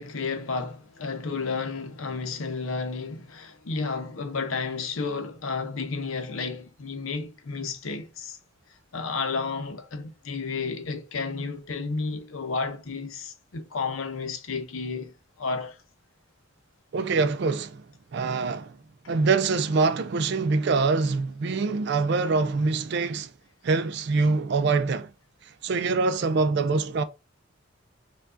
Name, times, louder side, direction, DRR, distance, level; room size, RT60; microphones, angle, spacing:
voice 1, 0.0-8.4 8.9-15.8, left 4 dB, 80° left, 0.7 m, -32 dB
voice 2, 16.9-17.8 18.1-18.8 19.1-23.3 23.6-25.1 25.4-27.0, right 4 dB, 55° right, 0.3 m, -24 dB
4.5 x 2.3 x 2.5 m
head